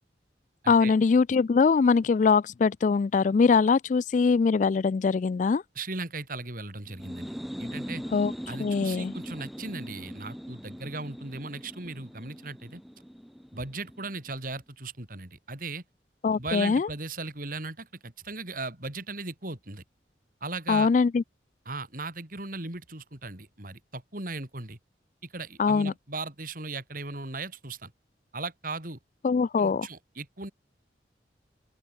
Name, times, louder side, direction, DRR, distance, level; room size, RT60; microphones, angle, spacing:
voice 1, 0.7-5.6 8.1-8.3 8.6-9.1 16.2-16.9 20.7-21.2 25.6-25.9 29.2-29.9, left 5 dB, 45° left, 0.3 m, -22 dB
voice 2, 5.8-8.0 8.5-12.8 13.5-15.8 16.4-19.8 20.4-20.9 21.7-24.8 25.2-27.9 28.3-29.0 29.6-30.5, right 3 dB, 50° right, 3.8 m, -37 dB
sound 1, 6.9-14.4, equal, ahead, 4.6 m, -40 dB
open air
head